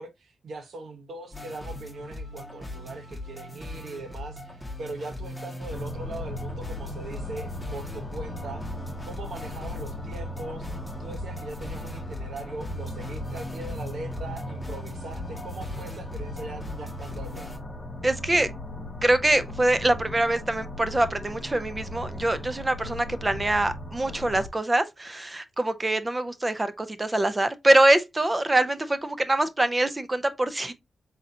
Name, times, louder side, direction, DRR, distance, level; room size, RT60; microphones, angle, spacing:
voice 1, 0.0-8.6 9.0-10.7 11.0-17.5, right 2 dB, 75° right, 1.0 m, -40 dB
sound 1, 1.3-17.6, left 1 dB, ahead, 1.7 m, -39 dB
sound 2, 5.7-24.5, left 1 dB, 25° left, 1.6 m, -38 dB
voice 2, 18.0-18.5 19.0-30.7, right 1 dB, 20° right, 0.6 m, -24 dB
4.2 x 3.9 x 2.7 m
wide cardioid pair, 105°, 0 cm